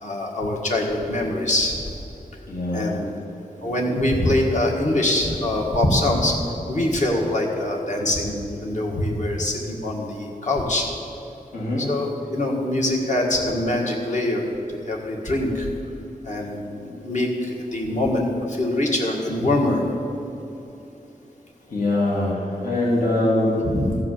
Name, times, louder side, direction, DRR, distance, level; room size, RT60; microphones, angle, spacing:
voice 1, 0.0-1.8 2.7-3.2 3.6-6.3 6.7-10.9 11.8-14.4 14.7-15.7 16.3-17.3 17.7-19.8 23.6-24.0, left 1 dB, 55° left, -1 dB, 1.8 m, -23 dB
voice 2, 2.5-2.9 11.5-11.9 21.7-23.6, left 1 dB, 75° left, -6 dB, 2.4 m, -23 dB
14.5 x 4.9 x 7.6 m, 3.0 s
wide cardioid pair, 95°, 15 cm